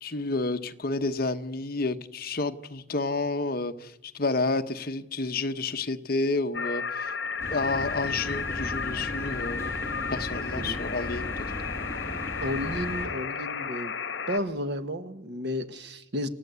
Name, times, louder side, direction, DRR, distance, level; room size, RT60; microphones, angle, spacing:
voice 1, 0.0-7.1 7.5-9.7 10.1-11.5, left 3 dB, 50° left, 8 dB, 1.1 m, -30 dB
sound 1, 6.5-14.4, left 5 dB, 70° left, 1.4 m, -33 dB
sound 2, 7.4-13.1, left 1 dB, 15° left, 5.4 m, -37 dB
voice 2, 12.4-13.9 14.3-16.3, left 1 dB, 60° right, 9 dB, 1.5 m, -32 dB
29.0 x 15.5 x 8.2 m, 0.98 s
head